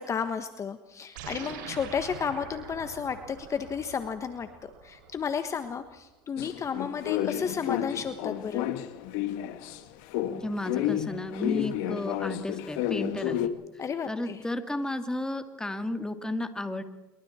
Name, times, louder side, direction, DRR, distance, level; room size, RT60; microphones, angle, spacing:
voice 1, 0.0-8.7 13.8-14.4, left 6 dB, 30° left, 9 dB, 1.4 m, -33 dB
sound 1, 1.2-5.8, right 6 dB, 90° right, 6.3 m, -44 dB
sound 2, 6.4-9.8 10.1-13.5, left 12 dB, 75° left, 2.0 m, -31 dB
voice 2, 10.3-16.8, left 2 dB, 5° left, 8 dB, 2.3 m, -33 dB
26.5 x 23.0 x 4.4 m, 1.1 s
supercardioid pair, 115°, 10 cm